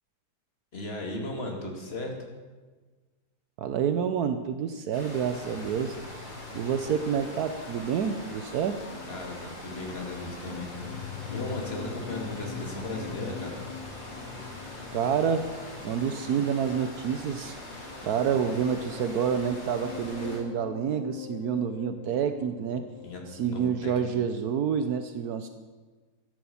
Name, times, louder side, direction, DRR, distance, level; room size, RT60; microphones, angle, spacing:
voice 1, 0.7-2.1 9.1-13.6 18.3-18.4 23.0-23.2 23.5-24.1, left 2 dB, 40° left, 1 dB, 2.7 m, -36 dB
voice 2, 3.6-6.0 6.5-8.8 14.9-15.5 15.8-17.6 18.0-22.9 23.3-25.5, right 7 dB, 75° right, 9 dB, 1.2 m, -28 dB
sound 1, 4.9-20.4, left 1 dB, 60° left, 4.1 m, -43 dB
sound 2, 5.5-24.4, left 9 dB, 85° left, 1.3 m, -44 dB
13.0 x 11.5 x 7.1 m, 1.4 s
omnidirectional pair, 1.7 m